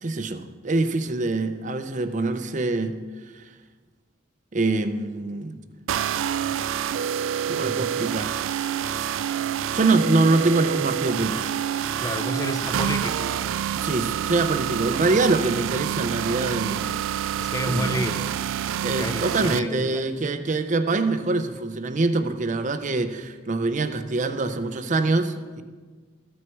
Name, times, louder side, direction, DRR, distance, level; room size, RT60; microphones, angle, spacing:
voice 1, 0.0-3.0 3.3-3.4 4.5-5.6 7.5-8.3 9.7-11.4 13.0-13.3 13.8-17.2 17.7-18.1 18.8-25.6, right 3 dB, 40° right, 9 dB, 0.6 m, -24 dB
sound 1, 5.9-19.6, right 9 dB, 85° right, 0.3 m, -27 dB
voice 2, 12.0-13.3 17.4-18.3 18.8-20.0, left 1 dB, 20° left, 9 dB, 0.5 m, -30 dB
14.0 x 6.2 x 4.6 m, 1.4 s
head